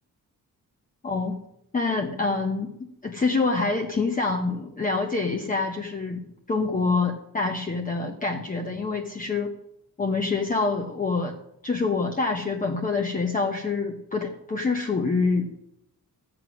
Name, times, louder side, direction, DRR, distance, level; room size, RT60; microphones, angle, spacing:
voice 1, 1.0-1.4 1.7-6.2 6.5-9.5 10.0-11.4 11.6-15.6, left 4 dB, 25° left, 2 dB, 0.9 m, -26 dB
14.0 x 7.9 x 6.2 m, 0.79 s
wide cardioid pair, 165°, 34 cm